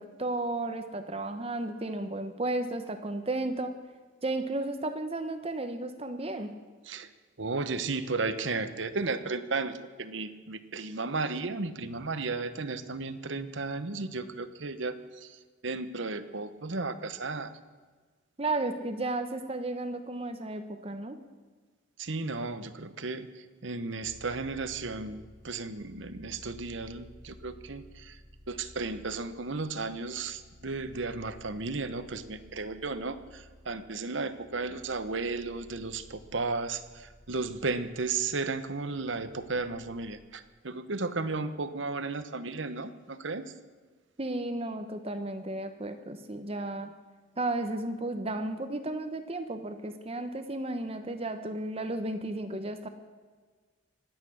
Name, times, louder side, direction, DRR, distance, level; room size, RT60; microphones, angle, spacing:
voice 1, 0.0-3.8 4.2-6.5 18.4-21.2 44.2-46.9 47.4-52.9, right 2 dB, 30° right, 8 dB, 1.0 m, -33 dB
voice 2, 7.4-17.5 22.0-28.2 28.5-43.5, right 3 dB, 75° right, 11 dB, 1.0 m, -34 dB
sound 1, 24.0-40.3, left 1 dB, 80° left, 6.1 m, -55 dB
24.5 x 9.3 x 6.3 m, 1.4 s
head